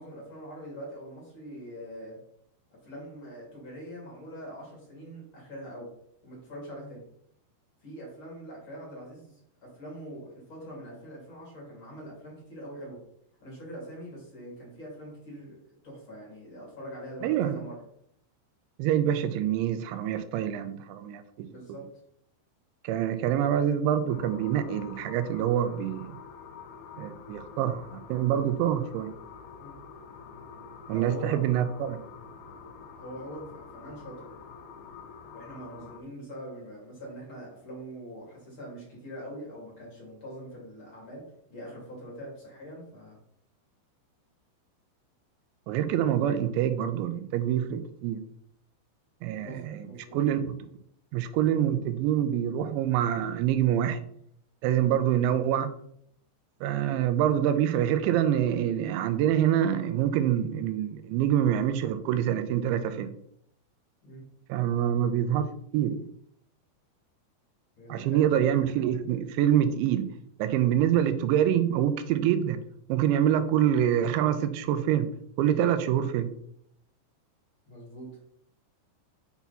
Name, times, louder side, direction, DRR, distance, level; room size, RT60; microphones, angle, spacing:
voice 1, 0.0-2.2 2.7-5.9 6.2-7.0 7.8-13.0 13.4-17.8 21.5-21.8 29.6-29.8 30.9-31.4 32.9-34.3 35.3-43.2 49.3-50.2 64.0-64.2 67.8-68.3 77.7-78.1, equal, 30° left, -4 dB, 3.1 m, -43 dB
voice 2, 17.2-17.6 18.8-21.5 22.8-26.2 27.0-29.1 30.9-32.0 45.7-48.2 49.2-49.8 50.1-50.7 51.1-54.1 54.6-55.7 56.6-63.1 64.5-65.5 65.7-66.0 67.9-70.1 70.4-72.6 72.9-75.1 75.4-76.3, right 10 dB, 85° right, 10 dB, 3.0 m, -26 dB
sound 1, 24.1-36.0, left 6 dB, 75° left, 2.4 m, -47 dB
7.0 x 5.9 x 4.1 m, 0.69 s
omnidirectional pair, 5.2 m